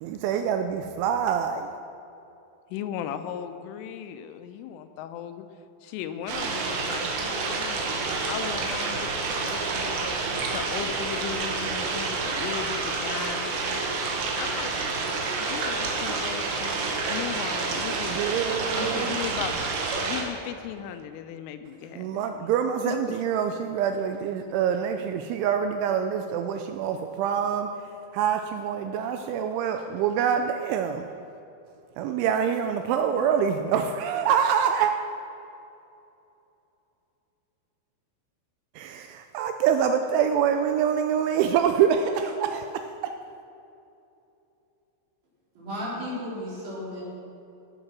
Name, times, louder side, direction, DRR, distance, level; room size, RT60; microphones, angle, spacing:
voice 1, 0.0-1.7 18.1-19.2 22.0-27.7 28.1-31.0 32.0-34.9 38.8-42.7, right 8 dB, 80° right, 6 dB, 2.8 m, -25 dB
voice 2, 2.7-5.5 5.8-14.7 15.4-18.4 18.8-19.6 20.0-22.3 22.8-23.2, left 9 dB, 85° left, 9 dB, 3.2 m, -37 dB
sound 1, 6.3-20.2, right 4 dB, 65° right, 3.5 m, -29 dB
voice 3, 45.6-47.0, left 1 dB, 50° right, -7 dB, 5.4 m, -34 dB
16.0 x 9.0 x 6.1 m, 2.7 s
omnidirectional pair, 5.7 m